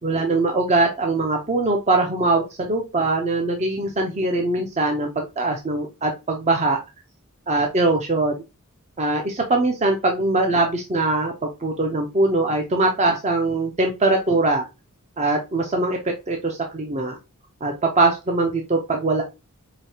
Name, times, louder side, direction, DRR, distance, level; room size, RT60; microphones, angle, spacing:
voice 1, 0.0-6.8 7.5-8.4 9.0-14.7 15.2-17.2 17.6-19.2, right 2 dB, 30° right, 3 dB, 0.6 m, -22 dB
5.0 x 2.8 x 2.7 m, 0.26 s
head